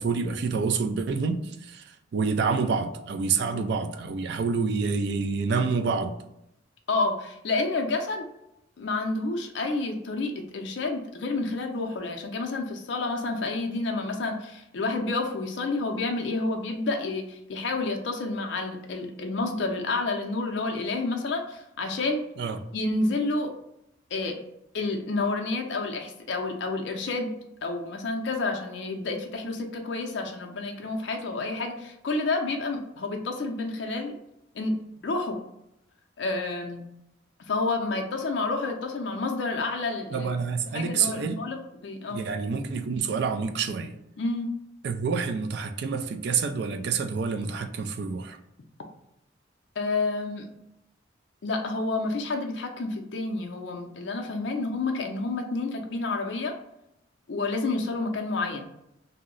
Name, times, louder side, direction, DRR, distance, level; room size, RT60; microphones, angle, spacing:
voice 1, 0.0-1.8 2.1-6.2 22.4-22.6 40.1-41.4 42.1-43.9 44.8-48.4, right 5 dB, 60° right, 6 dB, 0.3 m, -27 dB
voice 2, 6.9-8.3 8.8-22.2 22.7-23.5 24.1-24.4 24.7-27.3 27.6-34.1 34.5-34.7 35.0-35.4 36.2-36.9 37.5-40.3 40.7-42.2 44.2-44.5 49.8-50.5 51.4-56.5 57.3-58.7, left 3 dB, 65° left, 3 dB, 0.4 m, -29 dB
2.7 x 2.0 x 3.7 m, 0.83 s
head